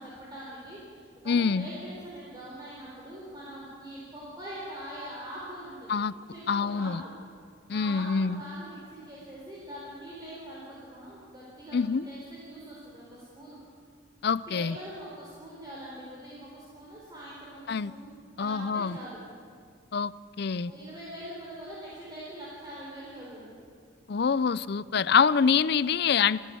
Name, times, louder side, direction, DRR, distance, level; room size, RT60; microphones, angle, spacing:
voice 1, 0.0-6.0 6.3-7.1 7.7-13.6 14.5-18.1 18.4-19.2 20.7-23.5, right 1 dB, 20° right, -6 dB, 4.2 m, -43 dB
voice 2, 1.3-1.7 5.9-6.1 6.5-7.0 7.7-8.4 11.7-12.0 14.2-14.8 17.7-17.9 18.4-19.0 19.9-20.1 20.4-20.7 24.1-26.4, left 6 dB, 55° left, 18 dB, 0.5 m, -25 dB
29.5 x 10.5 x 9.4 m, 2.1 s
head